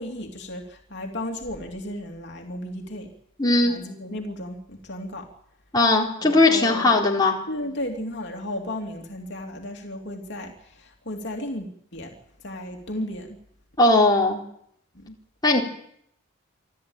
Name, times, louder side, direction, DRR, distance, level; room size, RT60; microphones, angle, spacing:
voice 1, 0.0-3.1 3.6-5.3 6.2-6.9 7.5-12.1 12.4-13.4 14.9-15.2, left 1 dB, 55° left, 1 dB, 3.2 m, -34 dB
voice 2, 3.4-3.7 5.7-7.4 13.8-14.4 15.4-15.6, left 2 dB, 20° left, -2 dB, 4.2 m, -18 dB
27.0 x 14.5 x 9.0 m, 0.72 s
head